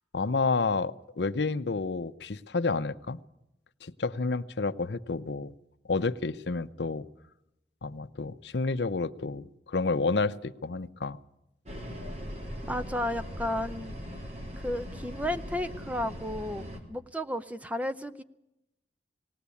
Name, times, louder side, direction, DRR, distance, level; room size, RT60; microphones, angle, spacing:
voice 1, 0.1-3.2 3.8-5.5 5.9-7.1 7.8-11.2, left 3 dB, 70° left, 13 dB, 0.7 m, -30 dB
sound 1, 11.6-16.8, equal, 40° right, 3.5 m, -40 dB
voice 2, 12.6-14.0 14.6-18.2, left 1 dB, 10° right, 10 dB, 0.7 m, -33 dB
19.5 x 17.5 x 8.4 m, 0.87 s
head